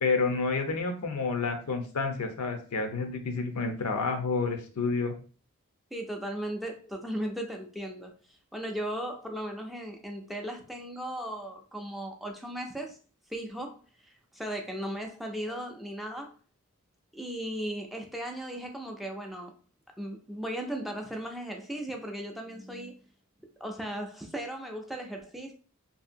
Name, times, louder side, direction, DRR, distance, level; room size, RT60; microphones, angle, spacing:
voice 1, 0.0-5.1, left 4 dB, 75° left, 0.6 m, -29 dB
voice 2, 5.9-13.0 13.3-16.3 17.1-19.5 20.0-23.0 23.6-25.5, right 1 dB, ahead, 0.3 m, -37 dB
2.7 x 2.7 x 2.5 m
head